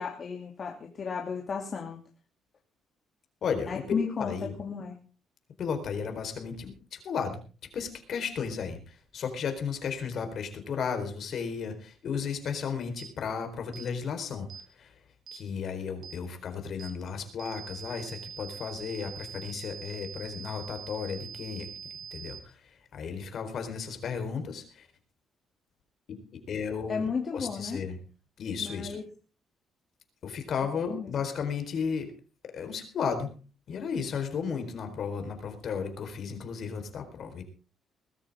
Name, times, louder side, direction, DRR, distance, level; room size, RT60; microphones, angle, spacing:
voice 1, 0.0-2.0 3.7-5.0 26.9-27.8 28.6-29.0 30.9-31.1, left 5 dB, 40° left, 0 dB, 2.7 m, -33 dB
voice 2, 3.4-4.5 5.6-7.4 7.7-14.5 14.8-14.9 15.3-21.7 22.1-24.9 26.3-27.1 27.3-28.0 28.4-29.0 30.2-32.1 32.5-33.3 33.7-37.4, left 6 dB, 55° left, 7 dB, 4.2 m, -34 dB
sound 1, 13.0-13.1 13.7-13.9 14.5-14.7 15.3-15.4 16.0-16.2 16.8-17.0 17.4-22.4, right 8 dB, 65° right, 3.5 m, -43 dB
21.0 x 13.0 x 3.6 m, 0.36 s
cardioid pair, 110°, 0 cm